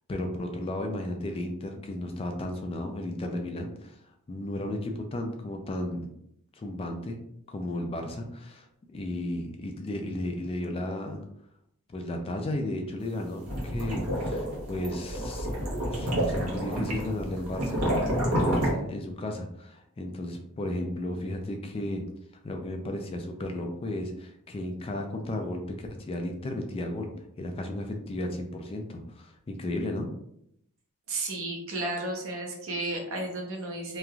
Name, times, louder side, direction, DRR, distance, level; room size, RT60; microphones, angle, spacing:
voice 1, 0.1-4.0 4.3-6.1 6.6-7.2 7.5-11.2 11.9-15.5 15.8-22.0 22.4-27.1 27.4-30.1, left 1 dB, 25° left, 4 dB, 0.3 m, -34 dB
sound 1, 13.2-18.7, equal, 80° right, 1.1 m, -29 dB
voice 2, 31.1-34.0, right 2 dB, 65° right, 1 dB, 0.7 m, -33 dB
3.0 x 2.4 x 2.3 m, 0.74 s
head